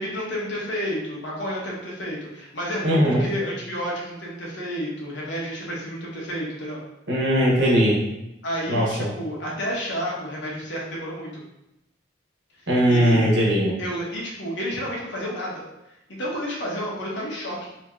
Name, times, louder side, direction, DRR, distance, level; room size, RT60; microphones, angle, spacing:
voice 1, 0.0-6.8 8.4-11.4 12.9-13.3 13.8-15.7 16.1-17.6, equal, 65° left, -4 dB, 1.0 m, -30 dB
voice 2, 2.8-3.2 7.1-8.0 8.7-9.1 12.7-13.7, equal, 65° right, -5 dB, 1.1 m, -19 dB
2.9 x 2.8 x 3.6 m, 0.89 s
head